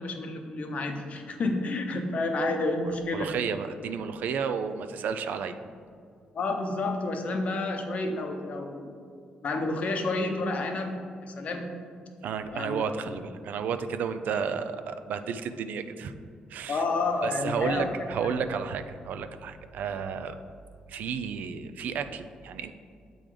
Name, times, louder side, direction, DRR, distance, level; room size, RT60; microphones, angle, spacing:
voice 1, 0.0-3.3 6.3-8.9 9.4-11.7 12.5-12.8 16.7-18.3, left 2 dB, 50° left, 4 dB, 0.8 m, -30 dB
voice 2, 3.1-5.6 12.2-16.1 16.5-16.8 17.2-20.4 20.9-22.7, right 6 dB, 75° right, 9 dB, 0.4 m, -32 dB
7.4 x 3.8 x 5.0 m, 2.3 s
cardioid pair, 100°, 3 cm